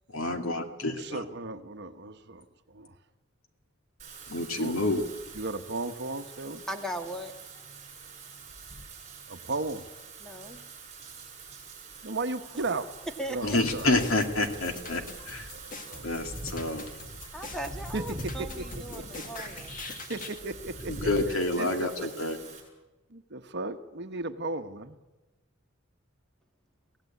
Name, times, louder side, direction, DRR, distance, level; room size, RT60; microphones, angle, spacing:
voice 1, 0.1-1.2 4.3-5.0 13.4-15.5 16.0-16.9 20.9-22.4, left 2 dB, 90° left, 6 dB, 2.5 m, -28 dB
voice 2, 0.8-2.9 4.5-4.8 5.3-6.6 9.3-9.9 12.0-12.9 13.3-13.9 15.6-16.1 17.9-18.7 18.9-19.2 19.8-21.1 21.6-22.3 23.1-25.0, right 2 dB, 60° right, 9 dB, 1.2 m, -35 dB
Wind / Rain, 4.0-22.6, right 3 dB, 35° right, 7.7 m, -44 dB
voice 3, 6.7-7.3 10.2-10.6 13.2-13.6 17.3-19.8, right 1 dB, ahead, 5 dB, 1.8 m, -38 dB
sound 1, 13.6-20.4, left 3 dB, 40° left, 1.8 m, -44 dB
23.5 x 16.5 x 8.5 m, 1.1 s
head